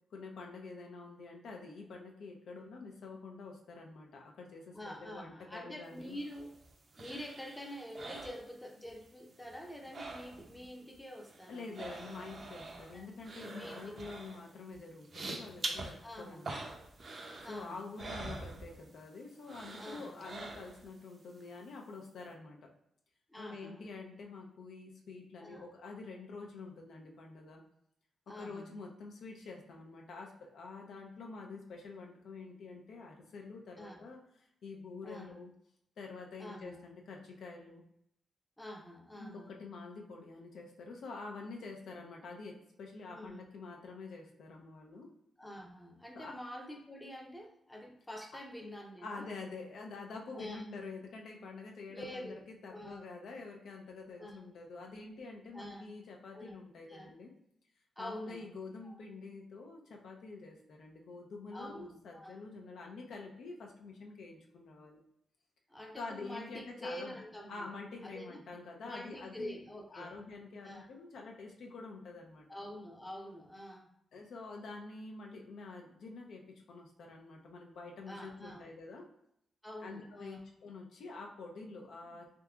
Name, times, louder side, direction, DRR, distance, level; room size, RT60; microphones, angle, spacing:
voice 1, 0.1-6.2 11.5-16.7 17.4-22.7 23.4-27.6 28.3-34.2 34.6-35.5 36.0-37.8 39.2-45.1 46.1-46.4 49.0-57.3 58.0-65.0 66.0-67.1 67.5-69.5 69.9-72.5 74.1-79.1 79.8-82.3, left 3 dB, 80° left, 1 dB, 0.5 m, -47 dB
voice 2, 4.7-6.5 7.0-11.9 12.9-13.1 13.5-13.8 16.0-16.5 17.4-18.2 19.8-20.2 23.3-23.9 25.4-25.6 28.3-28.8 33.8-34.0 35.0-35.3 36.4-36.8 38.6-39.6 43.1-43.4 45.4-49.3 50.3-50.6 51.9-53.1 54.2-54.4 55.5-55.9 56.3-56.6 56.9-57.1 58.0-58.5 58.8-58.9 61.5-62.4 65.7-67.7 68.0-68.4 68.8-70.1 70.6-70.9 72.5-74.0 78.1-78.7 79.6-80.4, equal, 10° left, 0 dB, 0.5 m, -47 dB
sound 1, 6.0-9.1 9.3-10.7 10.9-19.1 19.4-21.0 21.4-21.5, right 2 dB, 45° right, 0.5 m, -45 dB
3.5 x 2.8 x 2.3 m, 0.74 s
cardioid pair, 110°, 0 cm